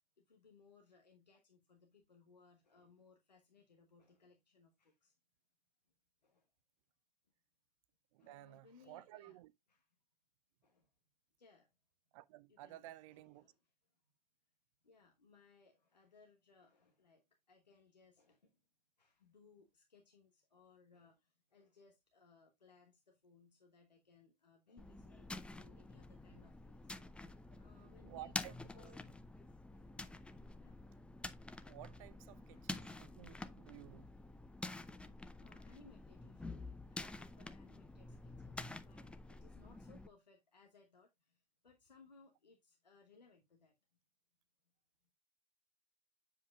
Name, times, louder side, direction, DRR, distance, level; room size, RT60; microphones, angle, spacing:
voice 1, 0.2-5.2 6.2-6.5 8.2-9.4 9.7-9.9 10.6-10.9 11.4-11.7 12.5-13.7 14.8-18.6 19.0-29.0 29.7-30.1 30.5-30.8 32.3-32.8 34.8-43.8, left 4 dB, 85° left, 1.1 m, -66 dB
voice 2, 8.1-9.5 12.1-13.5 28.1-28.9 31.6-34.1, right 15 dB, 55° right, 0.6 m, -54 dB
sound 1, 24.8-40.1, left 2 dB, 5° left, 0.5 m, -49 dB
7.4 x 7.2 x 2.3 m
figure-of-eight pair, 85°, 21 cm